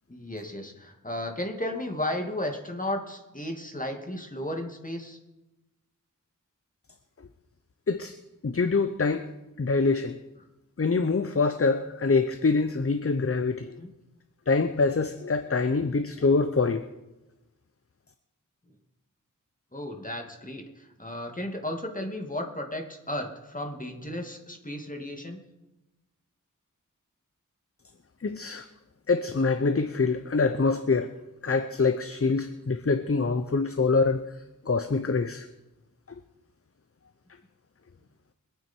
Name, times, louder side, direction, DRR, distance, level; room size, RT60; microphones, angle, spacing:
voice 1, 0.1-5.2 13.7-13.9 15.6-15.8 19.7-25.4 33.1-33.3, left 1 dB, 25° left, 3 dB, 2.4 m, -34 dB
voice 2, 8.4-9.3 9.6-10.2 10.8-13.7 14.5-16.9 28.2-28.7 29.1-31.1 31.4-34.2 34.7-35.5, left 4 dB, 45° left, 9 dB, 0.8 m, -25 dB
24.0 x 9.3 x 4.5 m, 0.99 s
wide cardioid pair, 50°, 33 cm